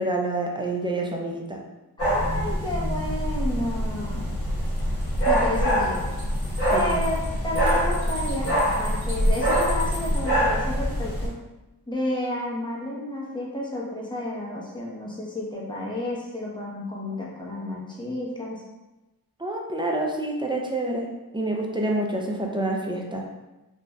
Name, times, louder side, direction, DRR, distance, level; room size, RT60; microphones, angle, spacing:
voice 1, 0.0-1.6 6.7-7.0 19.4-21.1 21.3-23.2, right 1 dB, 15° right, 0 dB, 0.4 m, -27 dB
sound 1, 2.0-11.3, equal, 40° left, 1.1 m, -24 dB
voice 2, 2.0-4.3 5.2-6.1 6.7-11.3 11.9-18.6, left 1 dB, 10° left, -5 dB, 0.8 m, -31 dB
sound 2, 4.6-10.2, equal, 80° right, 1.1 m, -41 dB
3.1 x 2.5 x 2.2 m, 1.0 s
wide cardioid pair, 60°, 38 cm